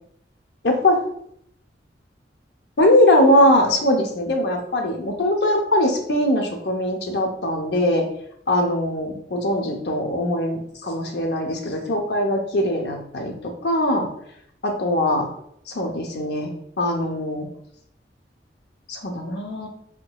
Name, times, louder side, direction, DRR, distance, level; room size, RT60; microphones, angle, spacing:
voice 1, 0.6-1.0 2.8-8.1 8.5-14.1 14.6-15.3 15.7-16.5 16.8-17.5 18.9-19.7, left 1 dB, 65° left, 3 dB, 0.7 m, -21 dB
3.7 x 3.4 x 2.2 m, 0.69 s
head